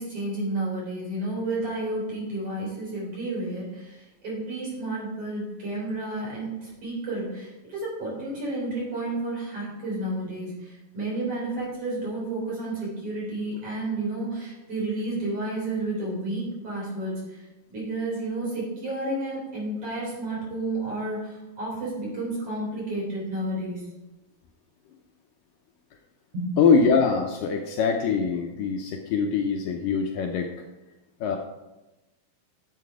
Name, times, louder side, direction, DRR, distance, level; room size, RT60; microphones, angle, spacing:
voice 1, 0.0-17.4 17.7-23.8 26.3-26.5, right 2 dB, 40° right, -5 dB, 4.9 m, -31 dB
voice 2, 26.6-30.5 31.2-31.4, left 5 dB, 75° left, 3 dB, 2.1 m, -23 dB
11.5 x 7.6 x 4.8 m, 1.0 s
omnidirectional pair, 4.4 m